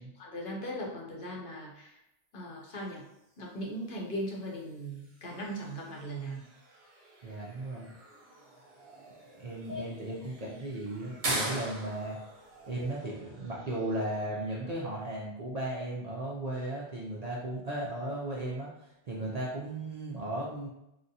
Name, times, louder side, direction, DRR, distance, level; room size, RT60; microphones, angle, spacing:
voice 1, 0.0-2.0 2.3-3.0 3.4-6.5 9.7-9.9 19.2-19.3, equal, 55° left, -2 dB, 0.8 m, -39 dB
sound 1, 2.8-14.7, right 2 dB, 70° right, 1.1 m, -43 dB
voice 2, 7.2-7.9 9.4-12.2 12.7-20.7, right 1 dB, 50° right, -5 dB, 0.5 m, -36 dB
3.9 x 2.1 x 2.7 m, 0.87 s
omnidirectional pair, 1.1 m